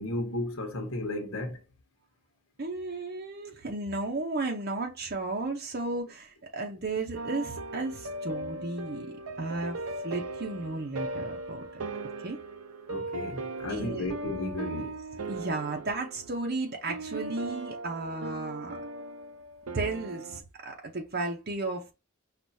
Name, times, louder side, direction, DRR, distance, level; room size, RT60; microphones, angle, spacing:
voice 1, 0.0-1.6 12.9-15.0, left 1 dB, 70° left, 1.2 m, -34 dB
voice 2, 2.6-11.9 12.2-12.4 13.7-14.1 15.3-18.8 19.7-21.9, right 2 dB, 45° right, 0.8 m, -34 dB
sound 1, 7.1-20.4, right 2 dB, 85° right, 0.6 m, -38 dB
6.3 x 2.4 x 2.7 m
head